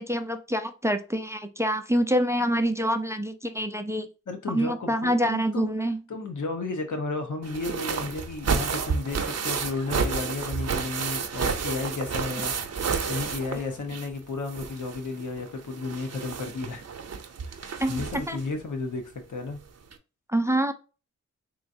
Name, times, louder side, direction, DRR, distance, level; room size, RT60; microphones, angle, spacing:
voice 1, 0.0-4.1 4.5-6.0 17.8-18.4 20.3-20.7, equal, 10° right, 0.4 m, -26 dB
voice 2, 4.3-5.7 6.1-12.5 12.8-16.8 17.5-19.6, left 3 dB, 85° left, 1.1 m, -33 dB
sound 1, 7.4-14.2 14.5-18.4 19.5-19.6 19.9-20.0, right 5 dB, 60° right, 0.6 m, -31 dB
3.7 x 3.1 x 2.6 m
wide cardioid pair, 85°, 29 cm